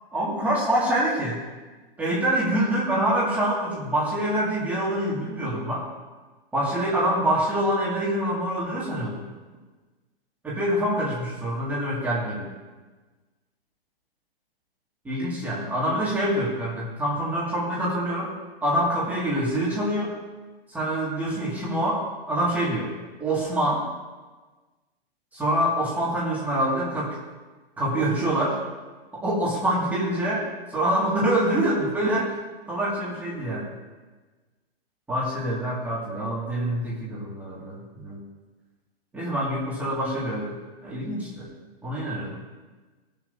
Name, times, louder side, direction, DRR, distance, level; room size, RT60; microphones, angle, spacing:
voice 1, 0.1-1.4 2.0-5.9 6.5-9.2 10.4-12.5 15.0-18.3 18.6-20.2 20.7-22.9 23.2-23.8 25.3-27.2 27.8-28.6 29.1-32.4 32.7-33.7 35.1-38.2 39.1-40.6 40.8-41.5 41.8-42.4, right 1 dB, 5° right, -7 dB, 1.9 m, -25 dB
22.0 x 7.5 x 2.6 m, 1.3 s
hypercardioid pair, 160°, 31 cm